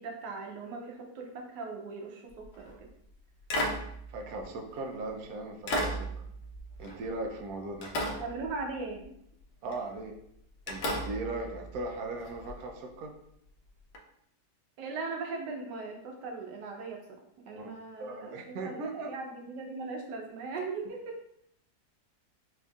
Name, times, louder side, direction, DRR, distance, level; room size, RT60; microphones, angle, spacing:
voice 1, 0.0-2.9 8.1-9.1 14.8-17.2 17.5-21.2, right 3 dB, 85° right, 1 dB, 1.3 m, -39 dB
sound 1, 2.4-2.8 3.5-5.0 5.7-7.5 7.8-9.0 9.7-10.0 10.7-12.5 13.9-14.0, equal, 85° left, 1.3 m, -35 dB
voice 2, 4.1-6.1 6.8-7.9 9.6-10.1 10.7-13.1 17.5-17.7 18.0-19.1, right 2 dB, 70° right, 2 dB, 0.9 m, -38 dB
4.4 x 2.6 x 2.3 m, 0.73 s
omnidirectional pair, 1.8 m